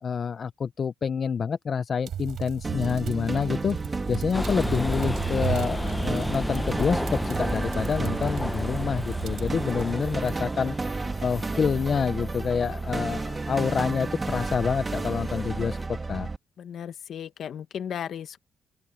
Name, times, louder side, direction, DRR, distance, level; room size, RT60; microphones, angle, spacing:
voice 1, 0.0-3.8 4.1-10.8 11.2-16.3, left 6 dB, 45° left, 0.6 m, -27 dB
sound 1, 2.1-10.3, right 10 dB, 70° right, 5.8 m, -36 dB
sound 2, 2.6-16.4, right 3 dB, 25° right, 2.8 m, -32 dB
sound 3, 4.3-15.9, left 1 dB, 5° left, 0.9 m, -34 dB
voice 2, 16.6-18.4, left 9 dB, 65° left, 1.5 m, -35 dB
open air
cardioid pair, 90°, 0 cm